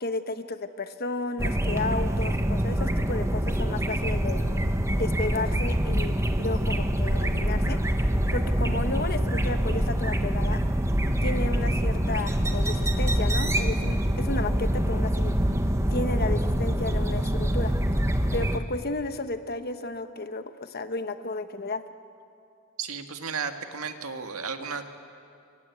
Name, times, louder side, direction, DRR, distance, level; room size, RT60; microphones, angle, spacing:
voice 1, 0.0-4.4 5.0-7.8 8.3-10.6 11.2-15.3 15.9-17.7 18.3-21.8, left 2 dB, 45° left, 9 dB, 1.2 m, -33 dB
sound 1, 1.4-18.6, equal, 15° right, 1.4 m, -25 dB
voice 2, 22.8-24.8, right 6 dB, 85° right, 6 dB, 1.9 m, -33 dB
29.0 x 24.0 x 8.3 m, 2.5 s
head